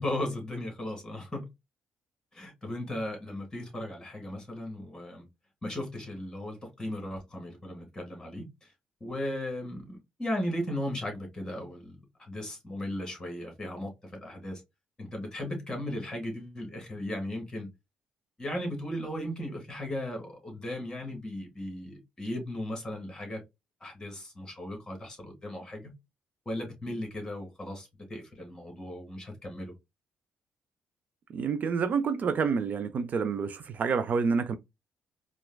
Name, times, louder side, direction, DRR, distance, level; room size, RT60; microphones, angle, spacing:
voice 1, 0.0-1.5 2.3-5.2 5.6-8.7 9.0-14.6 15.0-17.7 18.4-23.4 23.8-25.9 26.4-29.7, left 1 dB, 20° left, 1.7 m, -36 dB
voice 2, 31.3-34.6, right 5 dB, 50° right, 0.4 m, -28 dB
4.4 x 2.3 x 2.2 m
cardioid pair, 105°, 4 cm